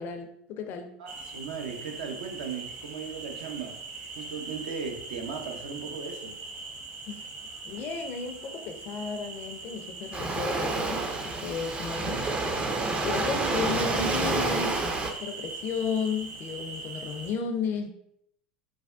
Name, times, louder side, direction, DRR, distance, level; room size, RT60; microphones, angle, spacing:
voice 1, 0.0-0.9 7.1-7.3 7.6-12.3 13.0-14.8 15.2-17.9, left 5 dB, 45° left, 0.4 m, -33 dB
voice 2, 1.0-3.8 4.2-6.3, right 5 dB, 75° right, 0.5 m, -37 dB
sound 1, 1.1-17.3, right 3 dB, 40° right, 0.9 m, -41 dB
Waves surf, 10.1-15.1, right 3 dB, 20° right, 0.4 m, -29 dB
3.3 x 2.2 x 2.3 m
hypercardioid pair, 80°, 5 cm